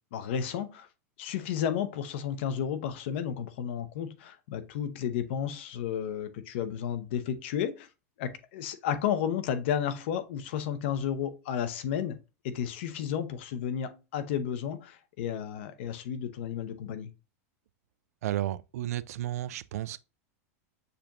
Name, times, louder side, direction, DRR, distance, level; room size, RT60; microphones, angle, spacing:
voice 1, 0.1-0.9 1.2-7.9 8.2-12.2 12.4-17.1, left 8 dB, 50° left, 0.6 m, -32 dB
voice 2, 18.2-20.0, right 13 dB, 75° right, 0.3 m, -33 dB
6.7 x 2.9 x 2.5 m
supercardioid pair, 180°, 8 cm